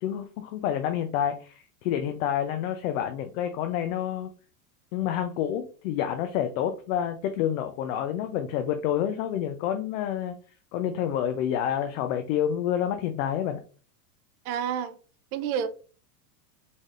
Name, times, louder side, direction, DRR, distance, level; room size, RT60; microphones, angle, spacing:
voice 1, 0.0-4.3 4.9-10.3 10.7-13.6, left 10 dB, 60° left, 0.6 m, -28 dB
voice 2, 14.4-15.0 15.3-15.7, right 8 dB, 65° right, 0.6 m, -29 dB
4.1 x 3.4 x 2.4 m
supercardioid pair, 155°, 47 cm